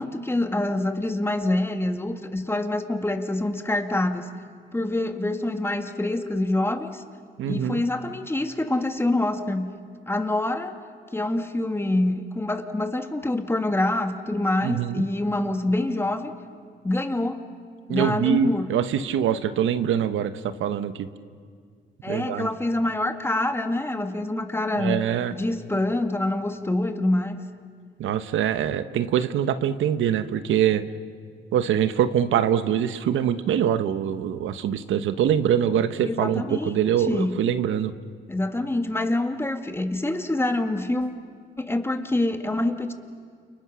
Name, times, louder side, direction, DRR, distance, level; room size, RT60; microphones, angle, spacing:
voice 1, 0.0-4.3 4.7-7.0 7.5-9.7 10.1-10.8 11.1-16.3 16.8-17.5 17.9-18.7 22.0-25.0 25.3-27.4 36.0-36.7 37.0-37.4 38.3-41.2 41.6-42.9, left 1 dB, 10° left, 6 dB, 2.0 m, -26 dB
voice 2, 7.4-7.8 14.6-15.0 17.9-20.9 22.1-22.5 24.7-25.3 28.0-30.8 31.5-37.9, right 9 dB, 80° right, 11 dB, 1.2 m, -24 dB
29.5 x 29.5 x 6.3 m, 2.1 s
cardioid pair, 90°, 20 cm